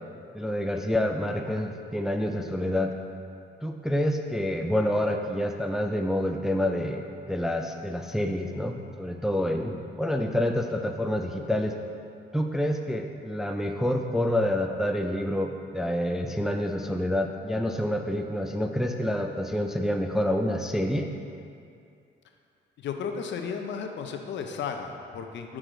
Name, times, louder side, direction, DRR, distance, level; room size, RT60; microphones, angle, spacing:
voice 1, 0.3-2.9 3.6-11.8 12.3-21.1, left 1 dB, ahead, 4 dB, 0.3 m, -28 dB
voice 2, 22.8-25.6, left 6 dB, 65° left, 5 dB, 0.6 m, -34 dB
6.1 x 4.8 x 3.8 m, 2.4 s
cardioid pair, 90°, 20 cm